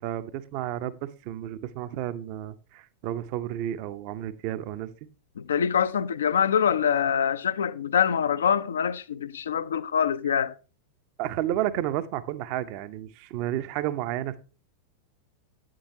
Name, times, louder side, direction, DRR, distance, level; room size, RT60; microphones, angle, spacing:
voice 1, 0.0-4.9 11.2-14.4, right 12 dB, 45° right, 0.6 m, -31 dB
voice 2, 5.4-10.5, left 8 dB, 65° left, 0.4 m, -24 dB
8.6 x 7.5 x 2.7 m
figure-of-eight pair, 90°, 0 cm